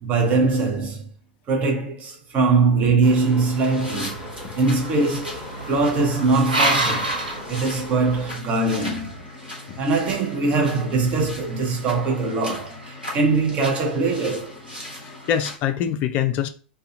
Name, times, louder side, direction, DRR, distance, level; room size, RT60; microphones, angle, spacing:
voice 1, 0.0-1.1 1.5-4.2 4.5-7.1 7.5-9.1 9.8-14.6, right 3 dB, 30° right, 0.7 m, -22 dB
sound 1, 3.0-8.4, right 1 dB, 15° right, 1.1 m, -40 dB
sound 2, 3.6-15.5, left 1 dB, 90° right, 1.1 m, -38 dB
sound 3, 3.9-8.3, right 1 dB, 75° right, 0.7 m, -27 dB
voice 2, 15.0-16.5, left 9 dB, 35° left, 0.3 m, -24 dB
2.4 x 2.2 x 2.7 m
figure-of-eight pair, 90°, 5 cm